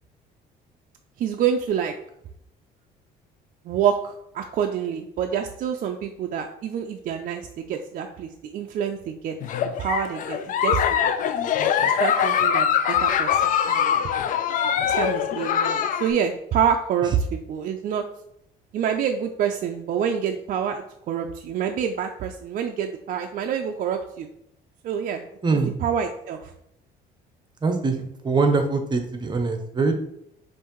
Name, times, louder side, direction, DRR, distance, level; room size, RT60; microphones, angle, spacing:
voice 1, 1.2-1.9 3.7-9.3 9.8-11.3 11.8-13.9 14.8-18.0 18.7-24.3 24.8-25.2 25.8-26.5, right 8 dB, 55° right, 4 dB, 0.4 m, -27 dB
Giggle, 9.4-16.1, left 8 dB, 55° left, 0.4 m, -23 dB
voice 2, 25.4-25.7 27.6-29.9, right 4 dB, 25° right, 5 dB, 0.7 m, -23 dB
5.5 x 2.6 x 3.0 m, 0.77 s
cardioid pair, 110°, 17 cm